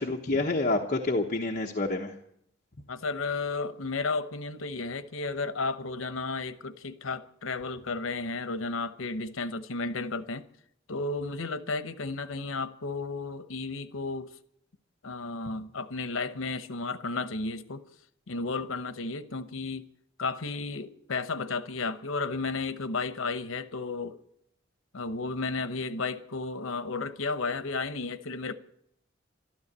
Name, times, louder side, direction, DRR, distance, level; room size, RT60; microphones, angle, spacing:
voice 1, 0.0-2.2, left 2 dB, 40° left, 1.1 m, -28 dB
voice 2, 2.9-10.4 10.9-14.3 15.0-17.8 18.3-19.9 20.2-24.2 24.9-28.5, left 3 dB, 80° left, 0.9 m, -33 dB
13.0 x 12.5 x 8.1 m
head